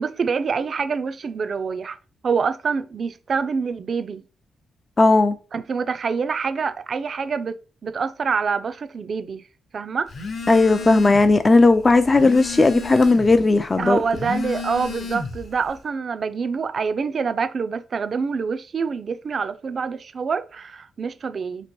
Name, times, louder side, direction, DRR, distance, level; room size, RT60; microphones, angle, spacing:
voice 1, 0.0-2.0 2.2-4.2 5.5-9.4 9.7-10.1 13.8-21.7, right 5 dB, 45° right, 0.4 m, -26 dB
voice 2, 5.0-5.4 10.5-14.0, left 3 dB, 25° left, 0.3 m, -16 dB
Telephone, 10.1-11.4 11.7-13.4 14.0-15.5, left 4 dB, 55° left, 0.8 m, -32 dB
2.9 x 2.9 x 4.4 m
cardioid pair, 115°, 0 cm